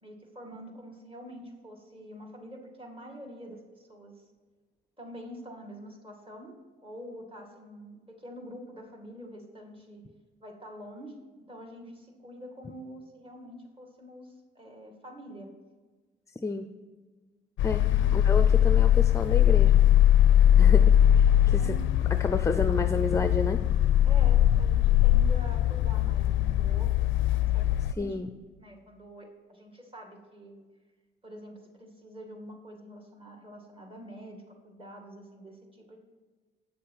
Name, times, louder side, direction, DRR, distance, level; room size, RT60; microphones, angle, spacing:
voice 1, 0.0-4.1 5.0-10.0 10.4-15.5 17.6-18.2 21.5-21.9 24.0-28.2 28.6-30.6 31.2-36.0, equal, 25° right, 3 dB, 2.2 m, -46 dB
sound 1, 17.6-27.9, left 11 dB, 75° left, 0.4 m, -21 dB
voice 2, 18.1-19.8 20.6-21.6 22.2-23.6 28.0-28.3, left 3 dB, 15° left, 9 dB, 0.5 m, -30 dB
8.5 x 6.6 x 5.7 m, 1.4 s
cardioid pair, 90°, 20 cm